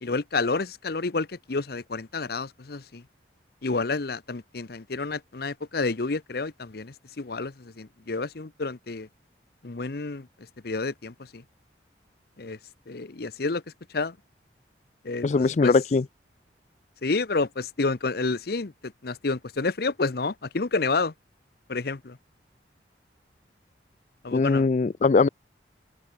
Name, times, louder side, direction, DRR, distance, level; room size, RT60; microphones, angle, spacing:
voice 1, 0.0-3.0 3.6-9.1 9.6-10.3 10.6-11.4 12.4-12.6 12.9-13.6 13.9-14.2 15.0-15.7 17.0-21.1 21.7-22.2 24.2-24.7, left 3 dB, 60° left, 0.8 m, -29 dB
voice 2, 15.2-16.0 24.3-25.3, left 4 dB, 40° left, 0.4 m, -21 dB
head